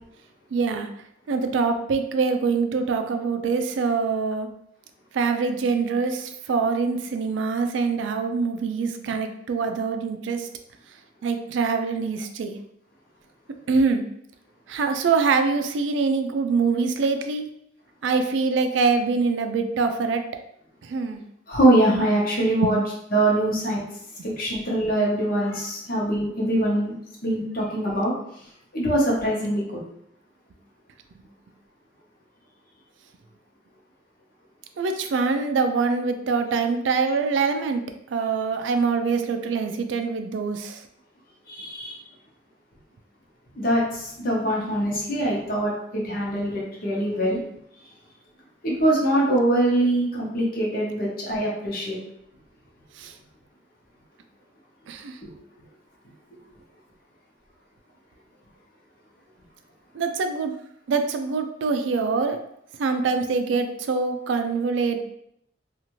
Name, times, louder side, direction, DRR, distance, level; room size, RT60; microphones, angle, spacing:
voice 1, 0.5-0.9 1.3-4.5 5.1-10.5 11.2-12.6 13.7-14.0 14.7-17.5 18.0-20.2 20.9-21.2 22.6-22.7 34.8-37.8 38.1-40.8 53.0-53.1 54.9-55.1 59.9-60.5 60.9-62.4 62.8-65.0, right 4 dB, 85° right, 7 dB, 0.3 m, -24 dB
voice 2, 21.5-22.8 23.1-23.8 24.2-26.9 27.2-28.1 28.7-29.8 41.5-42.0 43.6-47.4 48.6-52.0 55.2-55.3, right 1 dB, 50° left, -4 dB, 0.9 m, -23 dB
2.7 x 2.4 x 3.0 m, 0.74 s
head